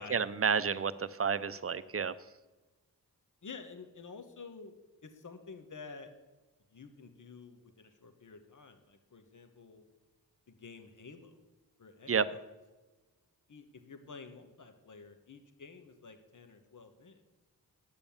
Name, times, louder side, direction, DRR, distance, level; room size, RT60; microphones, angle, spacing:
voice 1, 0.0-2.1 12.1-12.3, right 6 dB, 35° right, 14 dB, 0.6 m, -30 dB
voice 2, 3.4-4.8 5.0-6.1 6.7-9.8 10.5-11.4 11.8-12.1 13.5-17.2, left 4 dB, 50° left, 7 dB, 1.3 m, -50 dB
9.9 x 7.0 x 7.0 m, 1.2 s
cardioid pair, 40°, 38 cm